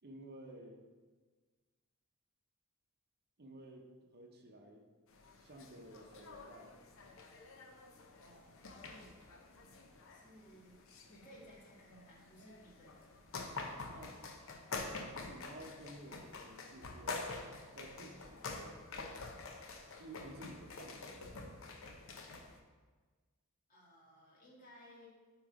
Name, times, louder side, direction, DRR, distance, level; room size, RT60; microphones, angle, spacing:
voice 1, 0.0-0.8 3.4-3.9 4.1-4.9 5.4-6.7 13.9-14.2 15.0-17.3 17.7-18.8 20.0-21.5, right 1 dB, 50° right, 2 dB, 0.8 m, -53 dB
sound 1, 5.1-22.6, left 3 dB, 65° left, 0.8 m, -47 dB
voice 2, 8.1-9.2 10.1-10.8 11.1-13.2 23.7-25.1, equal, 35° left, -5 dB, 1.9 m, -59 dB
8.7 x 3.1 x 4.6 m, 1.4 s
head